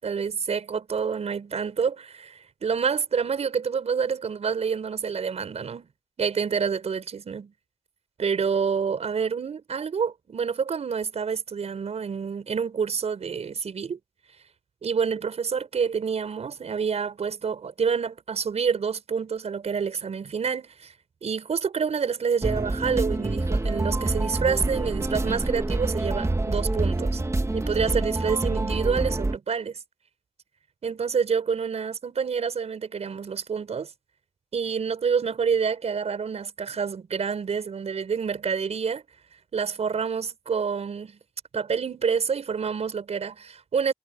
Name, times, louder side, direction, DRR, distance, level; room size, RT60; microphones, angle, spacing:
voice 1, 0.0-5.9 6.2-7.5 8.2-14.0 14.8-20.9 21.2-27.2 27.5-29.8 30.8-33.9 34.5-39.0 39.5-41.2 41.5-43.9, right 6 dB, 80° right, 7.4 m, -28 dB
sound 1, 22.4-29.4, right 2 dB, 25° right, 2.2 m, -26 dB
cardioid pair, 55°, 11 cm